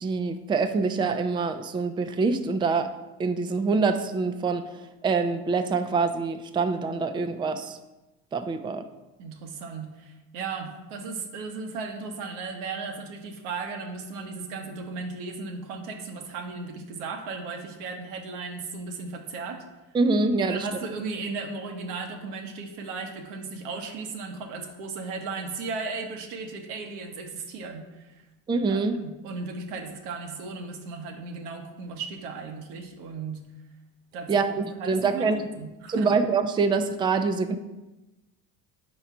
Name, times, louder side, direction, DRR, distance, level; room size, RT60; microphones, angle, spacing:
voice 1, 0.0-4.7 5.0-7.8 8.3-8.8 19.9-20.7 28.5-29.0 34.3-35.5 35.9-37.6, right 4 dB, 10° right, 8 dB, 0.4 m, -25 dB
voice 2, 9.2-19.6 20.5-28.2 28.7-33.4 34.1-34.5 34.8-36.1, right 4 dB, 75° right, 4 dB, 1.2 m, -36 dB
4.8 x 4.4 x 5.6 m, 1.0 s
hypercardioid pair, 75°, 46 cm